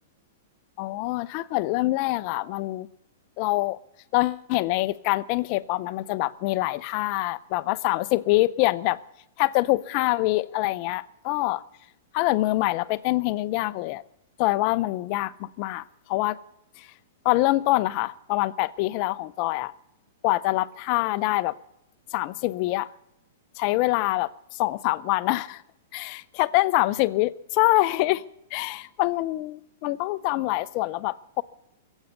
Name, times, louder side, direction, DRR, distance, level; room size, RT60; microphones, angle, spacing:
voice 1, 0.8-2.9 3.4-3.8 4.1-9.0 9.4-11.6 12.1-14.0 14.4-16.4 16.8-16.9 17.2-19.7 20.2-21.6 22.1-22.9 23.6-25.6 25.9-28.2 28.5-31.4, left 19 dB, 35° left, 0.5 m, -25 dB
21.5 x 8.2 x 8.0 m
hypercardioid pair, 160°, 0 cm